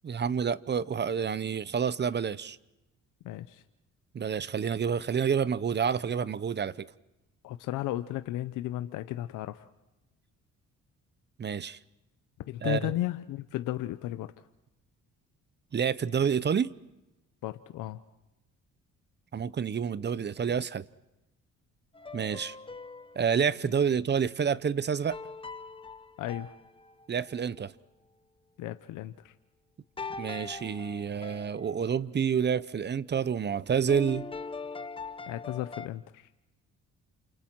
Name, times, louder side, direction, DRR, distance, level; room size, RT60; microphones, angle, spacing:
voice 1, 0.0-2.6 4.1-6.9 11.4-11.8 12.6-12.9 15.7-16.7 19.3-20.8 22.1-22.6 23.2-25.2 27.1-27.7 30.2-34.3, right 7 dB, 35° right, 0.8 m, -28 dB
voice 2, 3.2-3.6 7.4-9.7 12.5-14.5 17.4-18.0 26.2-26.5 28.6-29.3 35.3-36.3, left 14 dB, 90° left, 0.8 m, -34 dB
sound 1, 21.9-23.5 25.1-27.3 30.0-32.0 33.9-35.9, left 4 dB, 15° left, 0.9 m, -42 dB
29.5 x 27.5 x 4.6 m
cardioid pair, 90°, 30 cm